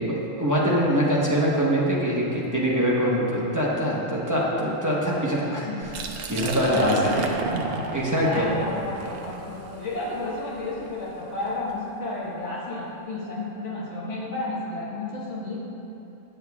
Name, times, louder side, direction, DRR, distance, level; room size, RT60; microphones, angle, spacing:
voice 1, 0.0-5.7 6.3-7.1 7.9-8.5, equal, 20° right, -6 dB, 0.6 m, -23 dB
Liquid, 5.8-11.6, right 3 dB, 65° right, 0.6 m, -32 dB
voice 2, 6.6-7.3 8.2-15.6, left 2 dB, 55° left, -7 dB, 1.5 m, -32 dB
8.8 x 7.7 x 2.3 m, 2.9 s
omnidirectional pair, 1.5 m